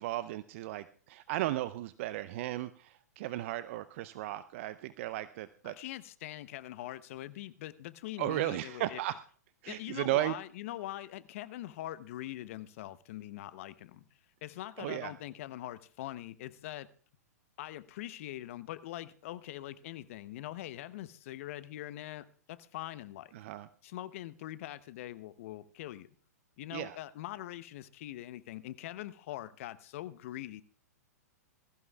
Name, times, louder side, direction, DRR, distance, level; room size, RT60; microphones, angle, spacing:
voice 1, 0.0-5.8 8.2-9.2 9.6-10.3 14.8-15.1 23.3-23.7 26.7-27.0, right 15 dB, 50° right, 15 dB, 0.5 m, -35 dB
voice 2, 5.6-9.0 9.7-14.0 14.4-16.9 17.6-23.3 23.8-26.1 26.6-30.6, left 14 dB, 55° left, 15 dB, 0.8 m, -43 dB
21.0 x 14.5 x 2.3 m, 0.43 s
hypercardioid pair, 115°, 9 cm